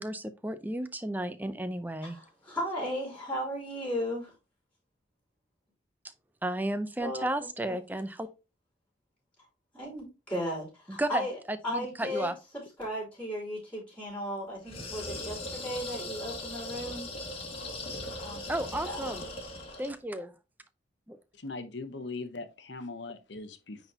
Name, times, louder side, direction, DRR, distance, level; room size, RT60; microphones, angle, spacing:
voice 1, 0.0-2.2 6.4-8.3 10.9-12.3 18.5-19.2 19.8-20.3 21.1-21.2, right 1 dB, 10° right, 0.6 m, -33 dB
voice 2, 2.0-4.3 7.0-7.3 7.7-7.8 9.7-11.3 11.6-12.3 12.8-17.1 18.2-18.5 18.8-19.1, equal, 5° left, 3.4 m, -35 dB
sound 1, 14.6-20.0, left 1 dB, 30° left, 1.7 m, -39 dB
voice 3, 21.4-23.8, left 3 dB, 70° left, 1.0 m, -40 dB
9.2 x 4.1 x 2.8 m
head